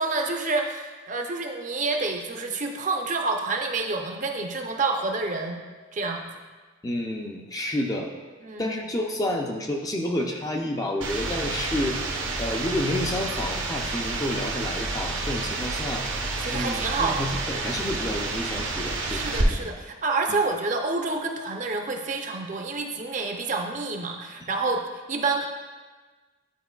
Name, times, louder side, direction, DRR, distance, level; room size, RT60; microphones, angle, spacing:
voice 1, 0.0-5.6 5.9-6.3 8.4-8.7 16.4-17.3 19.1-24.8 25.1-25.5, right 3 dB, 35° right, 3 dB, 0.5 m, -28 dB
voice 2, 6.8-8.1 8.6-12.0 12.4-16.0 16.5-19.6 24.4-24.5, left 1 dB, 20° left, 2 dB, 0.4 m, -30 dB
sound 1, 11.0-19.4, right 3 dB, 70° right, 0.8 m, -30 dB
10.0 x 4.5 x 2.3 m, 1.3 s
head